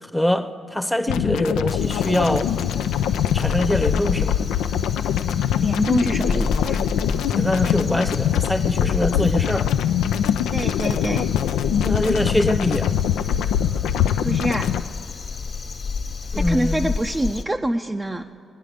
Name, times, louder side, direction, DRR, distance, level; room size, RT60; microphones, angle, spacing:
voice 1, 0.0-2.5 3.3-4.4 7.3-9.7 11.8-13.0 16.3-16.9, left 1 dB, 5° left, 11 dB, 0.8 m, -23 dB
sound 1, 1.1-14.8, left 9 dB, 75° left, 0.4 m, -23 dB
Crow, 1.8-17.4, left 4 dB, 60° left, 1.3 m, -31 dB
voice 2, 5.6-6.8 10.5-11.3 14.2-14.7 16.3-18.3, right 1 dB, 20° right, 4 dB, 0.5 m, -25 dB
19.5 x 9.9 x 5.0 m, 2.6 s
hypercardioid pair, 45°, 0 cm